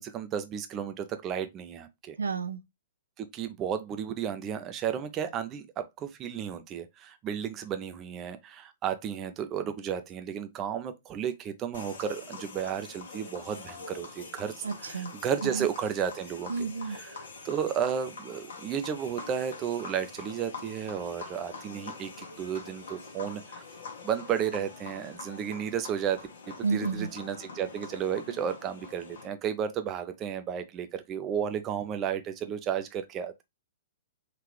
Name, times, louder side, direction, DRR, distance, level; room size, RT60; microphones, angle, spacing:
voice 1, 0.0-2.2 3.2-16.5 16.9-23.6 24.0-26.3 26.7-33.4, right 8 dB, 25° right, 0.6 m, -33 dB
voice 2, 2.2-2.6 14.6-15.1 15.4-15.7 16.5-17.0 26.6-27.1, right 5 dB, 75° right, 0.4 m, -31 dB
sound 1, 11.7-29.3, left 4 dB, 65° left, 1.3 m, -45 dB
3.7 x 2.8 x 3.2 m
figure-of-eight pair, 110°, 0 cm